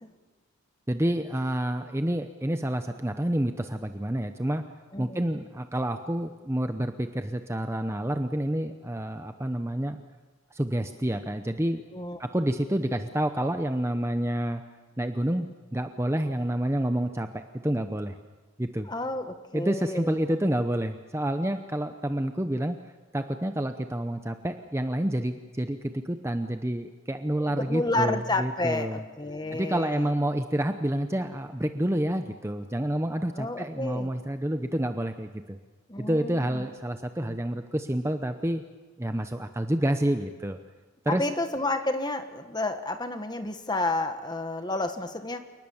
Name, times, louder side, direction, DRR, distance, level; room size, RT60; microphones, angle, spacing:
voice 1, 0.9-4.6 5.0-10.0 10.5-11.8 12.2-14.6 15.0-18.2 18.6-18.9 19.5-22.8 23.1-29.0 29.5-35.6 36.0-38.6 39.0-40.6 41.0-41.2, right 1 dB, 15° right, 7 dB, 0.8 m, -28 dB
voice 2, 4.9-5.3 11.9-12.2 18.8-20.2 27.4-30.1 33.4-34.1 35.9-36.6 37.2-37.4 41.1-45.5, left 2 dB, 20° left, 8 dB, 1.5 m, -31 dB
28.5 x 19.5 x 7.2 m, 1.3 s
head